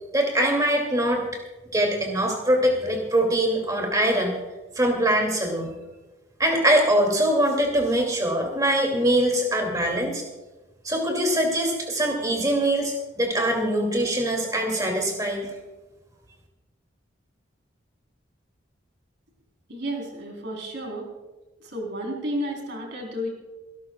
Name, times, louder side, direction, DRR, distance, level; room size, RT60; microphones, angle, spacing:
voice 1, 0.1-1.2 1.7-4.3 4.8-5.7 6.4-10.2 10.8-15.5, right 1 dB, 20° right, 2 dB, 2.6 m, -23 dB
voice 2, 19.7-21.1 21.6-23.3, equal, 60° right, 0 dB, 4.1 m, -32 dB
27.0 x 12.5 x 2.4 m, 1.1 s
head